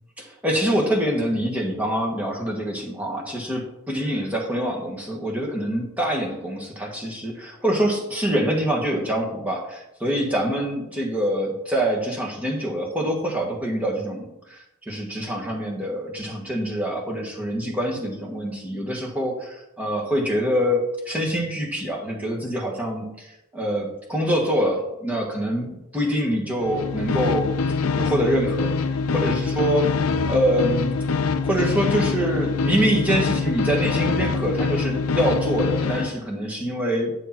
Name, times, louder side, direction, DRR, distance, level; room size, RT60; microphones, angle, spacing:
voice 1, 0.2-27.5 28.0-29.9 30.2-31.0 31.4-37.1, equal, 5° right, -2 dB, 1.6 m, -25 dB
sound 1, 26.6-36.2, left 4 dB, 85° left, 0.5 m, -24 dB
9.2 x 6.6 x 4.5 m, 0.89 s
head